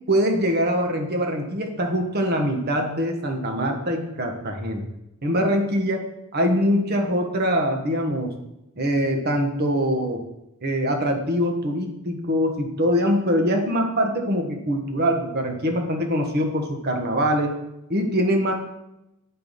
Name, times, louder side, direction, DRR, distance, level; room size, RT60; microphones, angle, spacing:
voice 1, 0.1-4.8 5.2-6.0 6.3-8.3 8.8-10.2 10.6-17.5 17.9-18.5, equal, 45° right, 3 dB, 1.2 m, -23 dB
8.3 x 4.5 x 5.2 m, 0.89 s
head